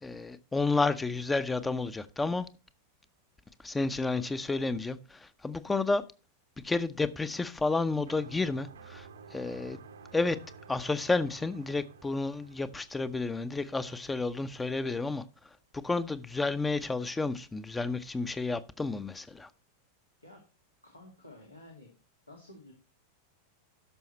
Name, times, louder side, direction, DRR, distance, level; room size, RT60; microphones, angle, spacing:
voice 1, 0.0-2.5 3.6-6.0 6.6-9.8 10.1-10.4 10.7-15.2 15.7-19.5, left 3 dB, 10° left, 0.7 m, -31 dB
sound 1, 8.1-14.8, right 5 dB, 70° right, 0.9 m, -52 dB
voice 2, 20.8-21.9 22.3-22.7, left 1 dB, 85° left, 2.2 m, -52 dB
12.5 x 5.7 x 4.3 m
figure-of-eight pair, 90°, 0 cm